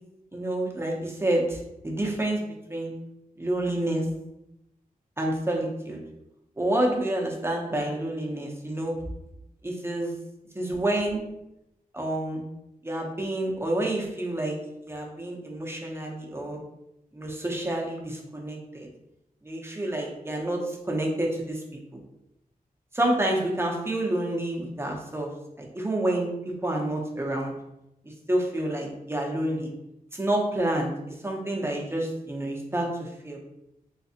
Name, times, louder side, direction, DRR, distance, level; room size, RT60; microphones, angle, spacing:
voice 1, 0.3-2.4 2.7-2.9 3.4-4.1 5.2-6.0 6.6-9.1 9.6-10.1 10.5-11.2 11.9-12.4 12.8-14.6 14.8-16.6 17.1-18.9 19.4-21.6 21.9-22.0 22.9-25.3 25.6-26.3 26.6-27.5 28.3-29.7 30.1-30.9 31.2-33.4, right 1 dB, 15° right, -1 dB, 0.7 m, -28 dB
3.3 x 3.2 x 2.8 m, 0.86 s
wide cardioid pair, 75°, 15 cm